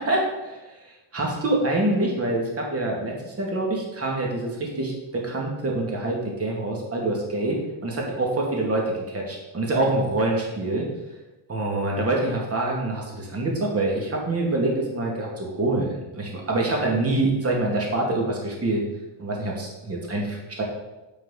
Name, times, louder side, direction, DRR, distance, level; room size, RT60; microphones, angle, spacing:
voice 1, 0.1-0.6 1.1-7.6 7.8-10.9 11.5-18.8 19.2-20.6, right 2 dB, 30° right, -1 dB, 2.9 m, -25 dB
9.9 x 5.5 x 6.0 m, 1.0 s
cardioid pair, 120°, 47 cm